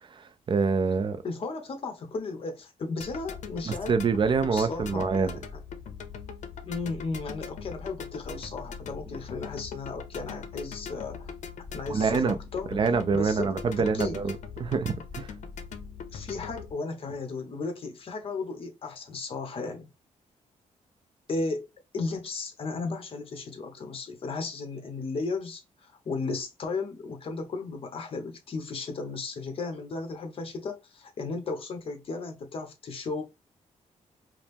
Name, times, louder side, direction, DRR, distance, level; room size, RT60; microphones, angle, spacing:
voice 1, 0.1-1.2 3.7-5.3 11.9-12.4 12.7-14.3 14.6-15.3, right 5 dB, 40° right, 0.4 m, -26 dB
voice 2, 1.2-3.9 4.5-5.6 6.6-11.3 11.7-12.7 13.1-14.2 16.1-19.9 21.3-21.7 21.9-33.2, left 3 dB, 45° left, 1.0 m, -35 dB
sound 1, 3.0-16.7, left 6 dB, 70° left, 0.7 m, -41 dB
5.0 x 2.0 x 3.4 m
wide cardioid pair, 135°, 13 cm